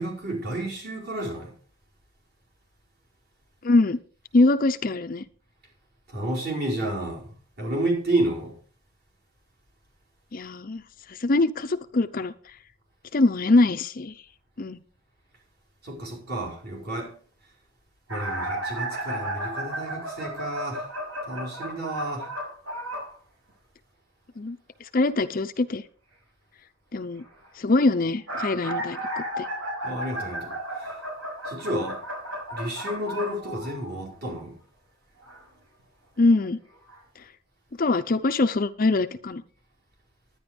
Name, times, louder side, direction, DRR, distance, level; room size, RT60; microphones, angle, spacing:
voice 1, 0.0-1.5 6.1-8.6 15.8-17.1 18.1-20.9 21.3-22.3 29.8-31.0 31.4-32.0 32.5-34.5, right 1 dB, 45° right, 4.9 m, -31 dB
voice 2, 3.6-4.0 4.3-5.2 10.3-10.8 11.1-12.3 13.1-14.1 14.6-14.8 24.4-25.8 26.9-27.2 27.6-29.5 36.2-36.6 37.8-39.4, left 2 dB, 40° left, 0.5 m, -23 dB
sound 1, 18.1-23.1 28.0-34.1 35.2-35.4 36.4-36.5 36.9-37.0, right 1 dB, 65° right, 6.3 m, -33 dB
10.5 x 10.5 x 5.2 m
head